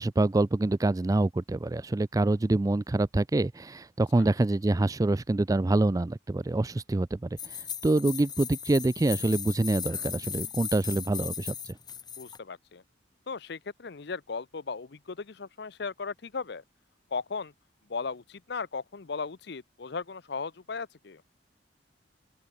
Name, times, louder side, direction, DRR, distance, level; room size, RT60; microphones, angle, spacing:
voice 1, 0.0-7.3 7.8-11.7, right 2 dB, 20° right, 0.4 m, -26 dB
sound 1, 7.4-12.4, left 8 dB, 25° left, 2.0 m, -37 dB
voice 2, 12.2-12.8 13.3-16.6 17.1-17.5 17.9-21.2, left 4 dB, 65° left, 0.7 m, -36 dB
open air
head